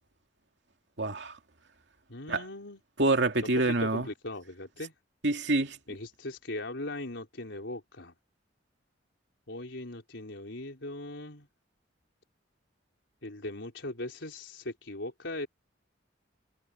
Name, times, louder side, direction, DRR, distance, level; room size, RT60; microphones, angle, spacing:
voice 1, 1.0-1.4 2.3-2.4 3.0-4.1 5.2-5.8, right 2 dB, 65° right, 2.7 m, -26 dB
voice 2, 2.1-2.8 3.4-3.5 3.8-4.9 5.9-8.1 9.5-11.5 13.2-15.5, left 2 dB, 80° left, 4.4 m, -39 dB
head